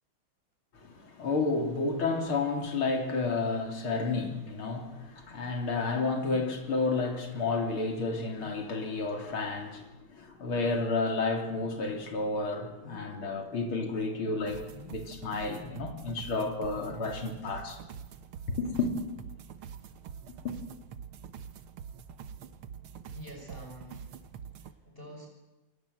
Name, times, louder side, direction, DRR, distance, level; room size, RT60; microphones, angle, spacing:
voice 1, 0.7-17.8 18.6-18.9 20.4-20.5, left 3 dB, 80° left, 3.9 m, -31 dB
sound 1, 2.6-18.3, left 4 dB, 50° left, 3.7 m, -54 dB
sound 2, 14.4-24.7, right 7 dB, 85° right, 2.0 m, -45 dB
voice 2, 23.0-25.3, equal, 25° left, 6.0 m, -48 dB
28.5 x 22.0 x 8.0 m
omnidirectional pair, 2.3 m